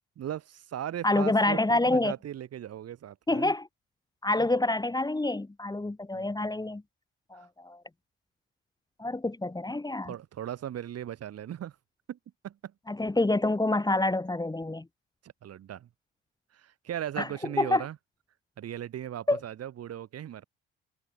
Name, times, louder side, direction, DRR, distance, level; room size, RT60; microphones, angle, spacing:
voice 1, 0.2-3.5 6.1-6.3 10.0-11.7 12.1-12.2 12.4-12.7 15.2-15.9 16.5-18.0 18.6-20.4, right 10 dB, 50° right, 5.1 m, -38 dB
voice 2, 1.0-2.1 3.3-3.7 4.2-6.8 7.3-7.8 9.0-10.1 12.9-14.8 17.2-17.3 17.6-17.8 19.3-19.4, left 2 dB, 15° left, 2.6 m, -27 dB
figure-of-eight pair, 55°, 31 cm